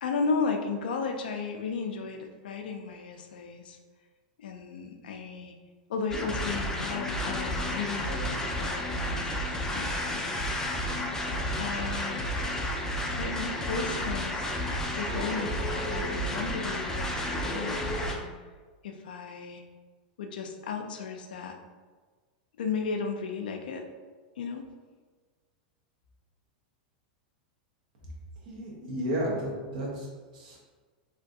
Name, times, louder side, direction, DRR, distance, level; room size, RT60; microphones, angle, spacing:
voice 1, 0.0-3.8 4.4-5.5 5.9-10.4 11.6-12.3 13.1-14.6 15.0-18.2 18.8-19.6 20.2-21.6 22.6-23.9 24.4-24.6, left 5 dB, 85° left, 5 dB, 0.4 m, -34 dB
sound 1, 6.1-18.1, left 1 dB, 10° left, 0.4 m, -31 dB
voice 2, 28.4-30.6, equal, 75° right, -3 dB, 1.0 m, -33 dB
3.1 x 2.5 x 2.6 m, 1.4 s
hypercardioid pair, 120°, 5 cm